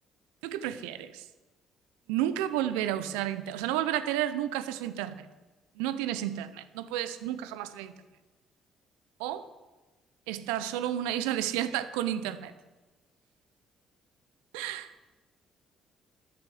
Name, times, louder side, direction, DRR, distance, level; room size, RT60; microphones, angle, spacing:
voice 1, 0.4-1.2 2.1-5.3 5.8-7.9 9.2-9.4 10.3-12.5 14.5-14.9, right 12 dB, 80° right, 12 dB, 0.7 m, -31 dB
12.5 x 6.8 x 8.4 m, 1.2 s
hypercardioid pair, 55°, 0 cm